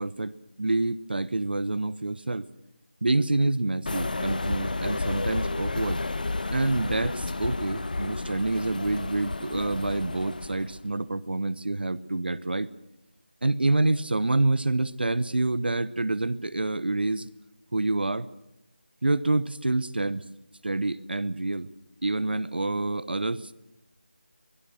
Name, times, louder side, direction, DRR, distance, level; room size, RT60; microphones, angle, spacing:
voice 1, 0.0-2.5 3.0-6.0 6.5-12.7 13.4-17.3 17.7-18.3 19.0-20.2 20.6-21.7 22.0-23.5, right 2 dB, 65° right, 17 dB, 1.1 m, -27 dB
sound 1, 3.9-10.8, left 2 dB, 50° left, 1.1 m, -31 dB
23.0 x 21.5 x 6.5 m, 0.92 s
figure-of-eight pair, 165°, 6 cm